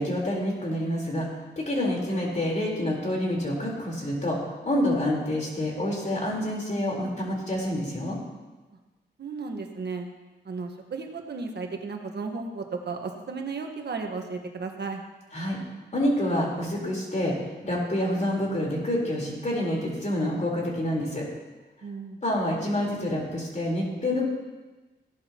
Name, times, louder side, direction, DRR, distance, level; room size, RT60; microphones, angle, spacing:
voice 1, 0.0-4.4 4.6-8.2 15.3-15.6 15.9-17.3 17.6-21.3 22.2-24.2, left 1 dB, 40° left, -2 dB, 4.2 m, -27 dB
voice 2, 9.2-10.1 10.4-15.0 21.8-22.2, right 4 dB, 65° right, 3 dB, 1.5 m, -34 dB
16.5 x 11.5 x 3.0 m, 1.2 s
cardioid pair, 80°, 18 cm